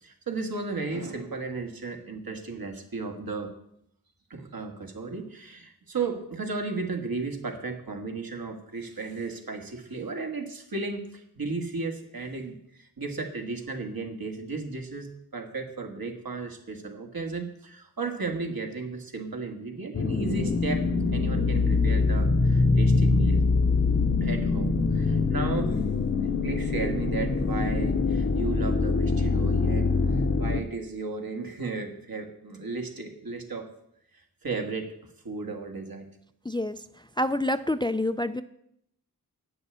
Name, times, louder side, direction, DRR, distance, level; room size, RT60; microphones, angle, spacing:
voice 1, 0.0-3.5 4.3-23.5 24.2-25.9 26.4-30.0 30.4-33.7 34.1-34.9 35.2-36.1, right 4 dB, 70° right, 4 dB, 1.6 m, -34 dB
sound 1, 19.9-30.6, left 3 dB, 35° left, 0.8 m, -24 dB
voice 2, 36.5-36.8 37.2-38.4, left 1 dB, 15° left, 12 dB, 0.3 m, -27 dB
8.4 x 6.8 x 6.9 m, 0.73 s
wide cardioid pair, 60°, 38 cm